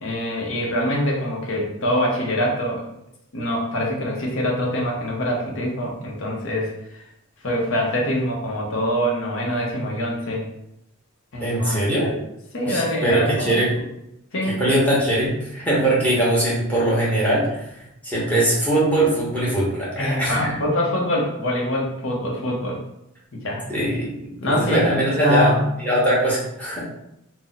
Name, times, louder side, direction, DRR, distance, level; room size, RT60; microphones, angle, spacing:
voice 1, 0.0-2.8 3.3-7.0 7.4-10.4 11.3-12.2 12.5-13.6 14.3-14.8 20.0-22.8 23.3-23.6 24.4-25.7, equal, 60° left, -1 dB, 0.7 m, -24 dB
voice 2, 11.4-12.1 12.6-13.7 14.5-17.6 18.0-20.7 23.7-25.5 25.8-26.8, right 1 dB, 5° left, -7 dB, 0.9 m, -21 dB
2.5 x 2.0 x 3.9 m, 0.81 s
head